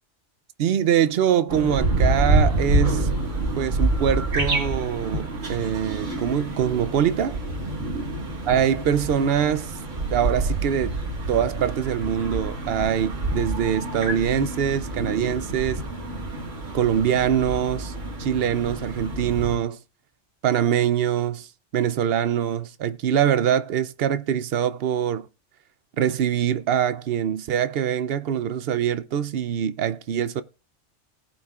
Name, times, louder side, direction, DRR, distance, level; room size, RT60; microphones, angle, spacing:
voice 1, 0.6-3.1 3.6-7.4 8.5-9.7 10.1-11.0 11.3-15.8 16.7-17.9 18.2-19.8 20.4-21.5 21.7-25.3 26.0-30.4, right 9 dB, 60° right, 0.8 m, -23 dB
sound 1, 1.5-19.6, right 2 dB, 90° right, 2.1 m, -27 dB
18.5 x 8.5 x 2.4 m
omnidirectional pair, 1.2 m